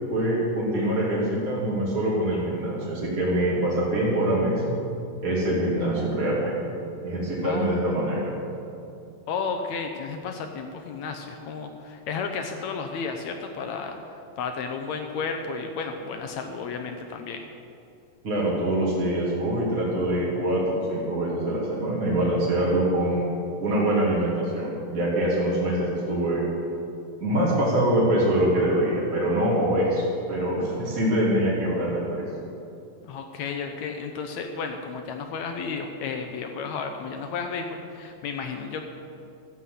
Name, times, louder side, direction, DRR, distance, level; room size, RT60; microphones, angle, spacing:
voice 1, 0.1-4.8 5.2-6.6 7.0-8.3 18.2-23.3 23.6-26.4 27.2-32.2, right 1 dB, 25° right, -7 dB, 2.7 m, -24 dB
voice 2, 7.4-7.8 9.3-17.4 33.0-38.8, left 5 dB, 75° left, 5 dB, 1.7 m, -33 dB
14.0 x 8.1 x 7.8 m, 2.6 s
omnidirectional pair, 4.1 m